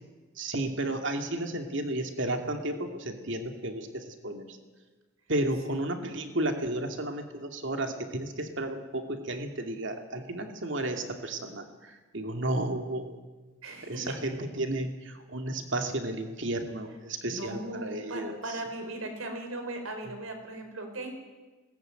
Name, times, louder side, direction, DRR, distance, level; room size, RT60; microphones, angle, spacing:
voice 1, 0.4-4.6 5.3-13.2 13.8-18.6 20.1-20.2, right 1 dB, 65° right, 5 dB, 2.5 m, -33 dB
voice 2, 13.6-14.1 17.2-21.1, right 2 dB, 85° right, 5 dB, 4.8 m, -38 dB
21.0 x 19.0 x 9.2 m, 1.3 s
head